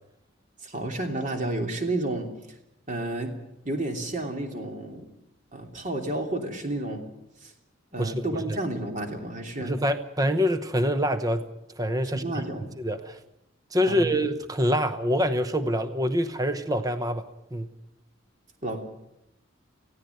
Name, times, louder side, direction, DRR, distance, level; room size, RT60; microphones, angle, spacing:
voice 1, 0.6-2.3 2.9-3.3 3.6-5.1 5.5-7.0 7.4-7.5 7.9-9.7 12.0-12.7 13.9-14.2 18.6-18.8, right 2 dB, 35° right, 3 dB, 3.0 m, -31 dB
voice 2, 8.0-8.6 9.6-11.5 11.8-12.4 12.8-13.2 13.7-17.2 17.5-17.7, equal, 15° right, 11 dB, 0.9 m, -26 dB
18.5 x 16.0 x 9.2 m, 0.86 s
head